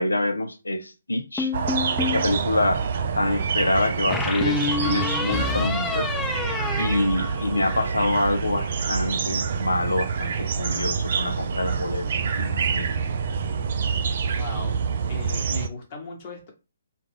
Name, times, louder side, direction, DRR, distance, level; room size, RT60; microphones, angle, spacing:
voice 1, 0.0-1.5 2.0-2.8 3.2-6.1 6.8-12.1 12.4-13.0, left 2 dB, 85° left, 0.4 m, -26 dB
sound 1, 1.4-2.3 4.1-7.9, left 4 dB, 10° left, 0.6 m, -28 dB
sound 2, 1.5-15.7, right 6 dB, 50° right, 0.3 m, -27 dB
voice 2, 14.4-14.8 15.1-16.5, left 3 dB, 35° left, 1.0 m, -37 dB
2.2 x 2.2 x 3.4 m
figure-of-eight pair, 140°, 0 cm